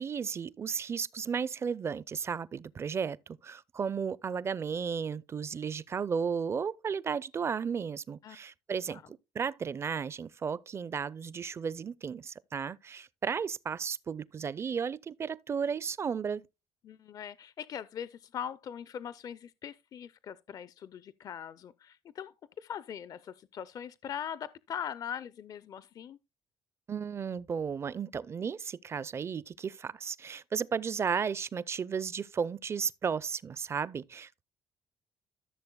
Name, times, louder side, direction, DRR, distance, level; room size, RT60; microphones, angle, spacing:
voice 1, 0.0-16.4 26.9-34.4, right 6 dB, 35° right, 0.4 m, -34 dB
voice 2, 16.8-26.2, left 8 dB, 50° left, 0.4 m, -41 dB
14.5 x 6.6 x 2.2 m
cardioid pair, 100°, 8 cm